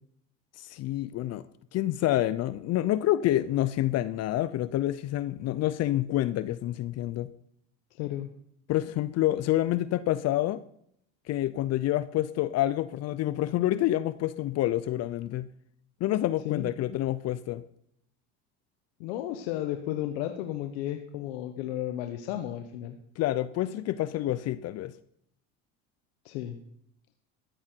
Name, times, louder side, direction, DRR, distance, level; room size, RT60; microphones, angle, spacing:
voice 1, 0.6-1.4 1.7-7.3 8.7-10.6 11.3-15.5 16.0-17.6 23.2-24.9, left 14 dB, 50° left, 15 dB, 0.6 m, -28 dB
voice 2, 7.9-8.3 16.4-16.6 19.0-23.0 26.2-26.6, left 12 dB, 85° left, 6 dB, 1.2 m, -33 dB
14.5 x 12.5 x 4.6 m, 0.71 s
supercardioid pair, 100°, 32 cm